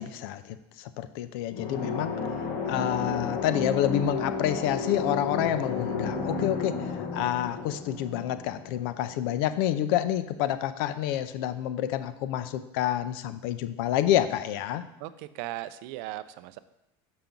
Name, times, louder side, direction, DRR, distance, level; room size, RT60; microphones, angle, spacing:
voice 1, 0.0-2.1 2.7-14.8, left 11 dB, 75° left, 12 dB, 0.5 m, -28 dB
sound 1, 1.5-9.2, left 4 dB, 55° left, 1.2 m, -32 dB
voice 2, 15.0-16.6, right 15 dB, 65° right, 14 dB, 0.4 m, -37 dB
6.9 x 5.7 x 3.8 m, 0.88 s
cardioid pair, 165°, 12 cm